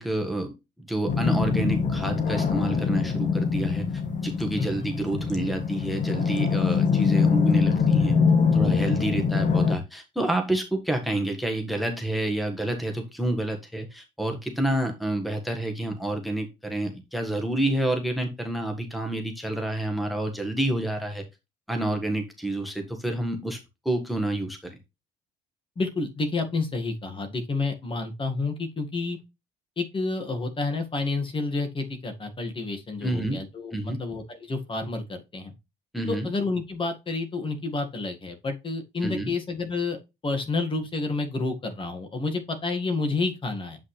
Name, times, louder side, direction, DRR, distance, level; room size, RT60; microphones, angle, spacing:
voice 1, 0.0-8.1 8.5-21.2 21.7-23.6 23.8-24.6 33.0-33.4 33.7-34.0 35.9-36.3 39.0-39.3, right 1 dB, ahead, 5 dB, 1.4 m, -29 dB
sound 1, 1.1-9.8, left 5 dB, 45° left, 1.6 m, -23 dB
voice 2, 4.6-4.9 25.8-29.2 29.8-33.7 34.0-35.5 36.1-43.8, left 3 dB, 30° left, 6 dB, 1.9 m, -29 dB
8.2 x 5.5 x 3.3 m, 0.24 s
cardioid pair, 110°, 17 cm